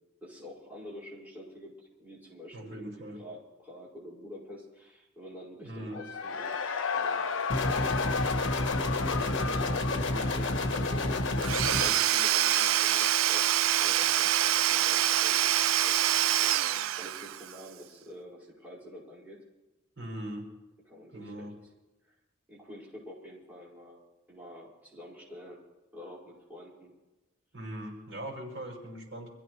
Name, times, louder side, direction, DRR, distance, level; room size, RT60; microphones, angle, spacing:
voice 1, 0.2-2.9 3.2-6.6 6.9-7.3 7.6-19.4 20.9-21.5 22.5-24.0 24.3-25.6 25.9-26.9, left 1 dB, 10° right, -7 dB, 5.4 m, -47 dB
voice 2, 2.5-3.2 5.6-6.0 20.0-20.4 21.1-21.5 27.5-29.3, right 1 dB, 65° right, -1 dB, 6.0 m, -40 dB
Cheering / Crowd, 5.9-12.6, left 5 dB, 85° left, 0.8 m, -34 dB
sound 1, 7.5-11.9, left 2 dB, 60° left, 1.4 m, -29 dB
Domestic sounds home sounds / Tools, 11.4-17.5, right 12 dB, 85° right, 0.4 m, -25 dB
25.5 x 15.5 x 3.3 m, 1.1 s
head